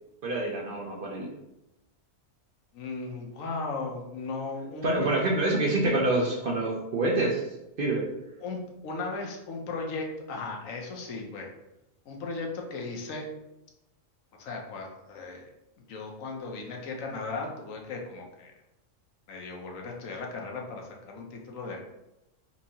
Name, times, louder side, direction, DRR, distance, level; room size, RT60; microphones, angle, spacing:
voice 1, 0.2-1.3 4.8-7.5 7.8-8.1, right 2 dB, 55° right, -2 dB, 0.6 m, -26 dB
voice 2, 2.7-5.1 8.4-11.5 12.1-13.3 14.4-15.5 15.9-18.5 19.3-21.8, left 3 dB, 80° left, 1 dB, 1.1 m, -36 dB
4.3 x 2.8 x 2.7 m, 0.93 s
omnidirectional pair, 1.4 m